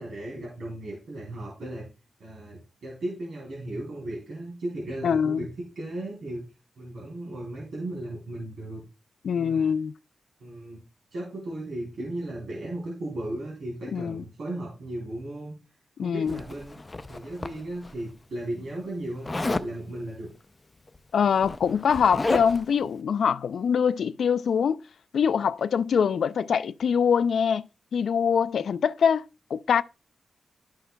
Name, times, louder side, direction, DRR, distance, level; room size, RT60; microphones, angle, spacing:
voice 1, 0.0-1.9 2.2-5.5 5.7-6.5 6.8-8.8 9.3-9.7 10.4-10.8 11.1-15.5 16.0-16.8 17.1-20.3, right 1 dB, 90° right, 2.9 m, -36 dB
voice 2, 5.0-5.5 9.2-9.9 13.9-14.2 16.0-16.4 21.1-24.8 25.1-27.7 27.9-29.2 29.5-29.8, left 7 dB, 85° left, 0.3 m, -24 dB
Zipper (clothing), 16.3-17.9 19.2-19.7 20.9-21.0 21.3-22.7, left 2 dB, 25° left, 0.5 m, -31 dB
13.0 x 5.6 x 2.2 m
wide cardioid pair, 110°, 0 cm